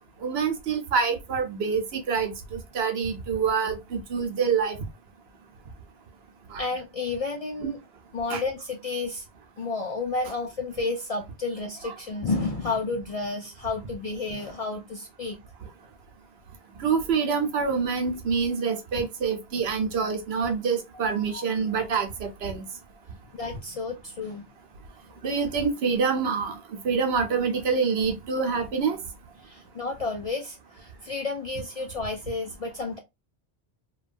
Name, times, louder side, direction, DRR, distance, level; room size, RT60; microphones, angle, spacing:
voice 1, 0.2-4.8 6.5-6.6 7.6-7.7 8.3-8.4 11.8-11.9 16.8-22.6 25.2-29.0, right 5 dB, 75° right, 0.9 m, -26 dB
voice 2, 6.6-7.8 8.1-9.2 9.6-15.4 20.9-21.4 23.3-24.4 29.4-33.0, left 3 dB, 55° left, 0.4 m, -31 dB
3.0 x 2.3 x 2.4 m
omnidirectional pair, 1.1 m